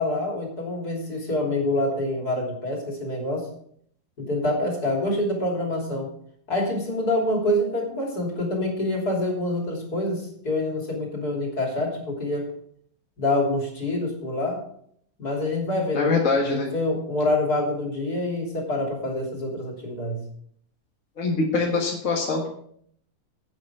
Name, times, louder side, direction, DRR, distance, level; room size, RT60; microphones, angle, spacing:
voice 1, 0.0-3.5 4.2-6.1 6.5-12.5 13.2-14.6 15.2-16.1 16.4-20.2, left 1 dB, 80° left, -1 dB, 3.7 m, -26 dB
voice 2, 15.9-16.7 21.2-22.5, left 3 dB, 55° left, -1 dB, 2.1 m, -23 dB
11.0 x 8.9 x 4.9 m, 0.64 s
omnidirectional pair, 1.6 m